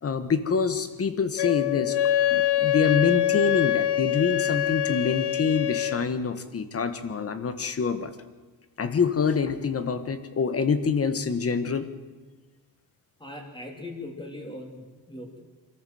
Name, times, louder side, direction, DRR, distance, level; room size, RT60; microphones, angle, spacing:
voice 1, 0.0-2.0 2.3-8.1 8.8-11.8, left 5 dB, 35° left, 11 dB, 1.4 m, -26 dB
Wind instrument woodwind instrument, 1.4-6.0, left 12 dB, 70° left, 0.9 m, -24 dB
voice 2, 13.2-15.4, left 1 dB, 10° left, 2 dB, 3.1 m, -40 dB
25.0 x 14.0 x 7.8 m, 1.3 s
wide cardioid pair, 155°, 41 cm